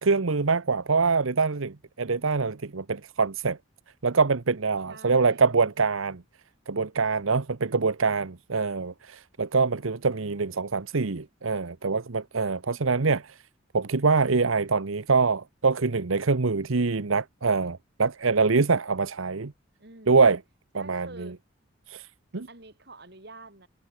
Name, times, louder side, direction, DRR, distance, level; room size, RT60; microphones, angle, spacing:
voice 1, 0.0-3.6 4.0-6.2 6.7-13.3 13.7-19.5 20.1-20.4 20.7-21.3 21.9-22.1 22.3-22.5, right 4 dB, 85° right, 0.9 m, -24 dB
voice 2, 4.9-5.4 19.8-20.2 20.7-21.4 22.3-23.7, right 2 dB, 55° right, 4.0 m, -47 dB
head